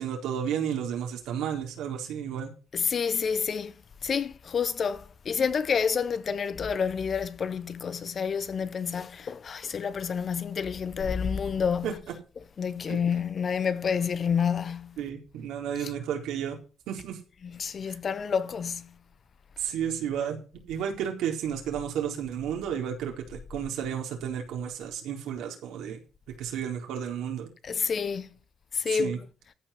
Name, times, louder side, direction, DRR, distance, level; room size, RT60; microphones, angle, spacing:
voice 1, 0.0-2.5 11.8-11.9 12.9-13.0 15.0-16.6 16.9-17.2 17.8-18.0 19.6-20.4 20.7-26.0 26.4-27.5 28.9-29.2, right 8 dB, 90° right, 4.0 m, -32 dB
voice 2, 2.7-3.7 4.0-12.0 12.6-15.0 17.6-18.9 27.6-28.3 28.7-29.1, left 6 dB, 50° left, 1.1 m, -29 dB
14.5 x 5.5 x 7.2 m
cardioid pair, 90°, 0 cm